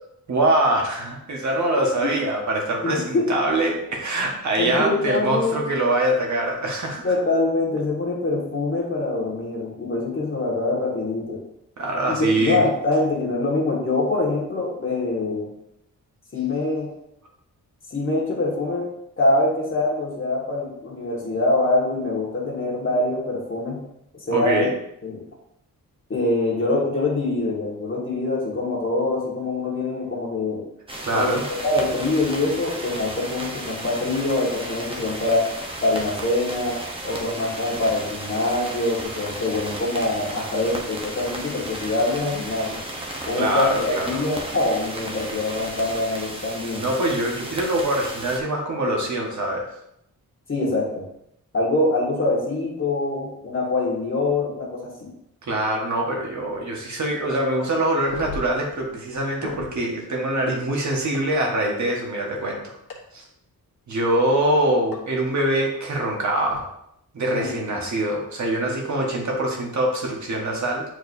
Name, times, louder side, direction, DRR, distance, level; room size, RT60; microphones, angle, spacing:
voice 1, 0.3-7.0 11.8-12.6 24.3-24.7 31.0-31.4 43.3-44.2 46.7-49.7 55.4-62.7 63.1-63.2 63.9-66.7 67.1-70.8, right 1 dB, 55° right, 0 dB, 1.4 m, -24 dB
voice 2, 2.8-3.3 4.6-5.6 7.0-11.4 12.0-15.5 16.3-16.9 17.9-18.9 19.2-23.8 24.3-24.6 25.0-25.2 26.1-30.6 31.1-31.4 31.6-35.5 35.8-36.8 37.0-42.8 43.3-46.9 50.5-51.0 51.5-55.1 67.3-67.6, left 2 dB, 35° left, -3 dB, 1.7 m, -24 dB
buffer static, 30.9-48.4, right 1 dB, 15° right, 0.9 m, -34 dB
sound 1, 58.0-59.8 61.1-61.2 62.9-63.0 64.9-65.0 66.4-66.6, left 3 dB, 70° left, 1.2 m, -37 dB
9.0 x 4.6 x 2.7 m, 0.77 s
wide cardioid pair, 170°, 35 cm